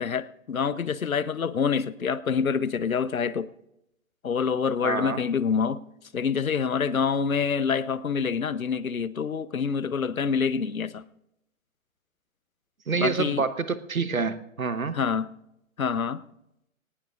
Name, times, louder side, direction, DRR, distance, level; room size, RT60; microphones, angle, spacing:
voice 1, 0.0-3.5 4.2-5.8 6.1-11.0 12.9-13.4 14.9-15.3 15.8-16.2, left 6 dB, 80° left, 0.8 m, -26 dB
voice 2, 4.8-5.2 12.9-14.9, right 5 dB, 85° right, 1.1 m, -27 dB
20.0 x 18.5 x 2.4 m
figure-of-eight pair, 130°, 41 cm